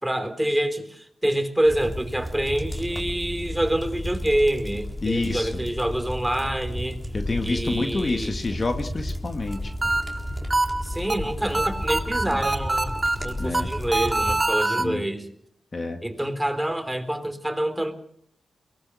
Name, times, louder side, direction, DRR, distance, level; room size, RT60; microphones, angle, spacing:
voice 1, 0.0-7.0 7.4-8.3 10.8-12.9 13.2-15.3 16.0-17.9, right 1 dB, 10° right, 7 dB, 3.6 m, -26 dB
sound 1, 1.6-14.4, left 1 dB, 10° left, 3.9 m, -33 dB
voice 2, 5.0-5.6 7.1-9.7 13.4-13.7 14.7-15.0 15.7-16.0, left 3 dB, 40° left, 6 dB, 1.9 m, -28 dB
sound 2, 9.5-14.8, right 2 dB, 25° right, 2.1 m, -25 dB
23.0 x 19.0 x 6.4 m, 0.67 s
cardioid pair, 60°, 0 cm